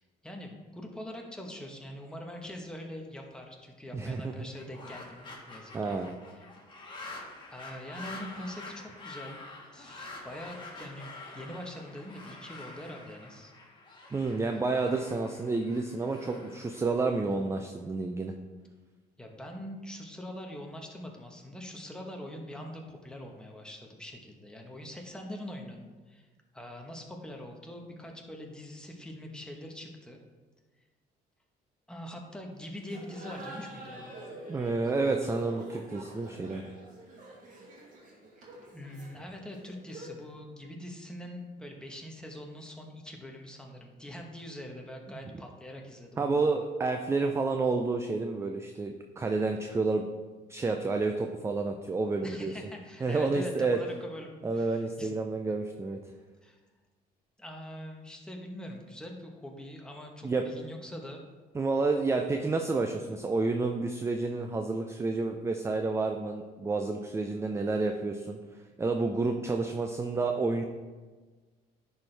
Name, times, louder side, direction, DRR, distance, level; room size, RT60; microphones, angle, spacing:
voice 1, 0.2-6.0 6.3-6.4 7.5-9.5 9.7-13.5 19.2-26.3 26.5-30.2 31.9-34.2 38.7-46.5 52.2-55.1 55.4-55.5 56.4-56.6 57.4-61.4, left 1 dB, 5° left, 1 dB, 1.1 m, -43 dB
voice 2, 3.9-4.5 5.7-6.1 14.1-18.3 34.5-36.6 46.2-50.0 50.5-52.5 53.0-53.8 54.4-56.0 60.2-60.4 61.5-68.4 68.8-70.6, right 3 dB, 15° right, 5 dB, 0.4 m, -30 dB
sound 1, 4.4-17.6, left 2 dB, 30° left, 1.6 m, -47 dB
Laughter, 32.8-40.3, right 1 dB, 50° right, 2.1 m, -47 dB
10.5 x 4.4 x 3.3 m, 1.4 s
cardioid pair, 110°, 17 cm